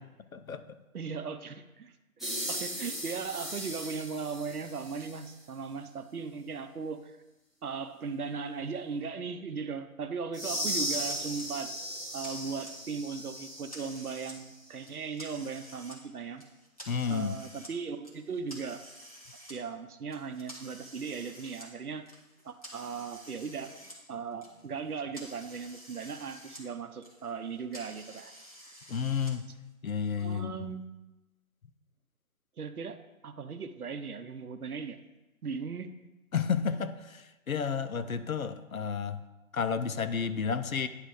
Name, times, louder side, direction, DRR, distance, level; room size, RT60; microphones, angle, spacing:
voice 1, 0.3-0.6 16.9-17.3 28.9-29.5 29.8-30.6 36.3-39.2 39.5-40.9, left 6 dB, 70° left, 11 dB, 0.7 m, -31 dB
voice 2, 0.9-7.2 7.6-11.7 12.1-16.4 17.1-18.8 19.5-22.0 22.4-23.7 24.1-28.3 30.2-30.8 32.6-35.0 35.4-35.9, right 5 dB, 80° right, 10 dB, 0.8 m, -38 dB
sound 1, 2.2-5.3 10.3-14.4, equal, ahead, 0.6 m, -37 dB
sound 2, 11.1-11.5 11.9-13.0 13.4-14.4 14.7-16.0 16.4-17.7 18.0-19.5 20.1-24.0 24.3-26.6 26.9-29.3, equal, 25° left, 0.9 m, -50 dB
9.4 x 3.3 x 6.3 m, 1.0 s
figure-of-eight pair, 175°, 44 cm